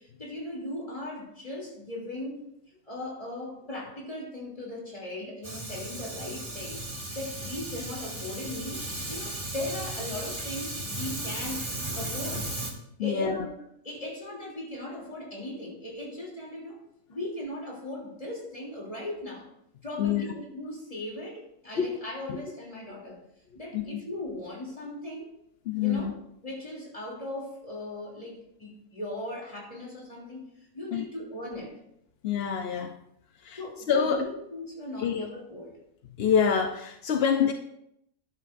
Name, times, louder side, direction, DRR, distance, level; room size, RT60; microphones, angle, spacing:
voice 1, 0.0-2.5 2.9-6.8 7.1-11.7 11.9-12.5 13.0-16.8 17.1-19.5 19.8-23.2 23.5-25.3 25.7-26.1 26.4-30.4 30.7-31.8 33.6-35.8, left 1 dB, 20° left, 3.0 m, -38 dB
Fire, 5.4-12.7, right 1 dB, 20° right, 1.6 m, -35 dB
voice 2, 13.0-13.5 20.0-20.2 21.8-22.0 22.3-22.4 23.7-24.0 25.7-26.1 30.9-31.1 32.2-33.0 33.4-34.3 35.0-35.3 36.2-37.5, left 7 dB, 60° left, 0.6 m, -26 dB
13.5 x 10.5 x 2.6 m
omnidirectional pair, 1.7 m